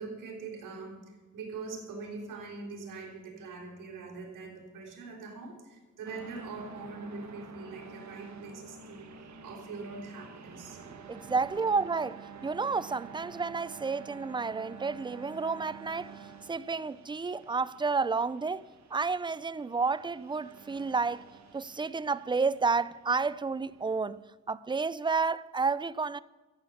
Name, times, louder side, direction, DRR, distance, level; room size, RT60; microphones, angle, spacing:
voice 1, 0.0-10.8, right 4 dB, 80° right, 3.7 m, -43 dB
sound 1, 6.0-24.0, right 5 dB, 60° right, 1.6 m, -49 dB
voice 2, 11.1-16.2 16.5-18.6 18.9-21.3 21.5-26.2, right 4 dB, 15° right, 0.3 m, -31 dB
14.0 x 8.4 x 7.0 m
cardioid pair, 115°, 31 cm